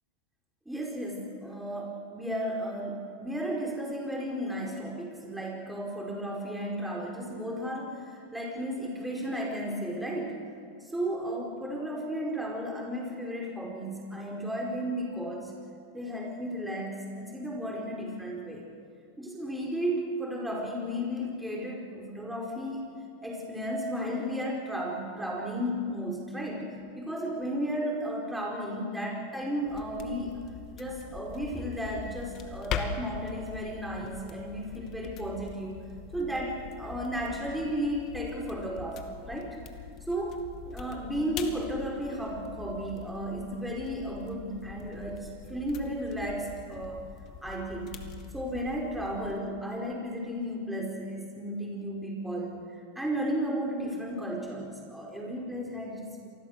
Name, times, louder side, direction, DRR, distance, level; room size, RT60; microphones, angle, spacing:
voice 1, 0.6-10.4 10.8-15.5 15.9-18.6 19.2-22.8 23.2-30.4 30.7-35.8 36.1-39.6 40.1-47.0 47.4-48.0 48.3-56.3, equal, 5° right, -2 dB, 4.7 m, -34 dB
sound 1, 29.7-49.4, left 7 dB, 40° left, 2.2 m, -43 dB
27.0 x 20.0 x 6.7 m, 2.3 s
supercardioid pair, 130°, 0 cm